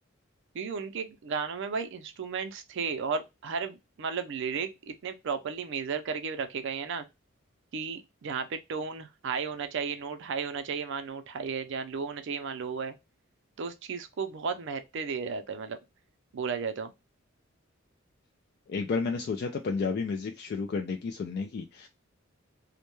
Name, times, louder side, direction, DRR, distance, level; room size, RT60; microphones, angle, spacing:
voice 1, 0.5-7.0 7.7-12.9 13.6-15.8 16.3-16.9, right 5 dB, 60° right, 0.4 m, -34 dB
voice 2, 18.7-21.9, left 4 dB, 50° left, 0.3 m, -31 dB
2.2 x 2.1 x 2.9 m
head